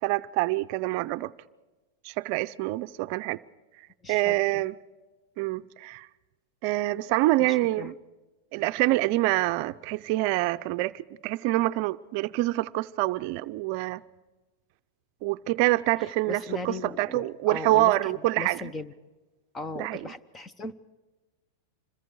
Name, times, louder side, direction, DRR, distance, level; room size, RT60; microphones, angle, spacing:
voice 1, 0.0-1.3 2.0-3.4 4.1-4.8 5.4-6.1 6.6-7.9 8.5-14.0 15.2-18.6 19.8-20.1, right 18 dB, 50° right, 0.6 m, -26 dB
voice 2, 4.0-4.6 7.4-7.9 16.3-18.9 19.5-20.7, left 2 dB, 15° left, 1.0 m, -38 dB
26.5 x 21.5 x 4.7 m
hypercardioid pair, 130°, 0 cm